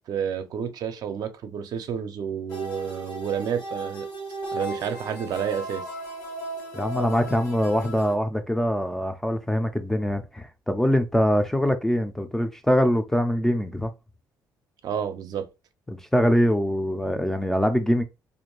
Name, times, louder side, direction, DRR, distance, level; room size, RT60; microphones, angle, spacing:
voice 1, 0.1-4.1 4.5-5.9 14.8-15.5, right 8 dB, 60° right, 0.5 m, -30 dB
sound 1, 2.5-8.1, right 1 dB, 85° left, 1.2 m, -36 dB
voice 2, 6.7-13.9 15.9-18.0, equal, 5° left, 0.3 m, -23 dB
2.5 x 2.2 x 3.0 m
cardioid pair, 125°, 7 cm